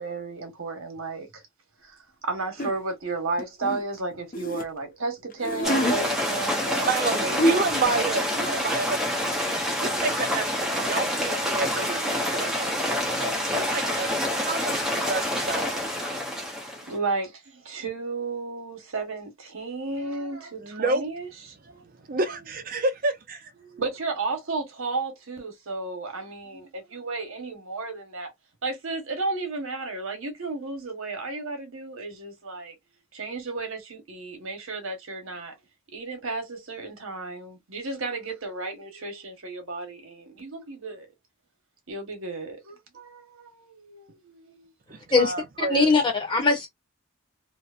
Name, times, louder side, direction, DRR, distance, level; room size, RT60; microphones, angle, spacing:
voice 1, 0.0-1.4 1.8-6.9 7.3-7.6 10.7-11.5 11.8-12.5 14.0-14.1 15.1-15.2 16.9-22.0 23.6-28.3 28.6-32.7 33.1-35.6 35.9-41.1 41.9-44.7, right 3 dB, 75° right, 1.1 m, -33 dB
sound 1, 2.6-2.8 3.4-4.7 5.3-6.0 7.0-7.1 7.4-7.9, equal, 40° left, 0.5 m, -26 dB
sound 2, 5.6-16.9, left 1 dB, ahead, 0.7 m, -27 dB
voice 2, 6.8-15.8 20.6-21.0 21.6-23.5 44.9-45.9, right 3 dB, 40° right, 0.5 m, -30 dB
voice 3, 45.6-46.7, left 3 dB, 25° left, 1.0 m, -21 dB
2.8 x 2.0 x 2.4 m
head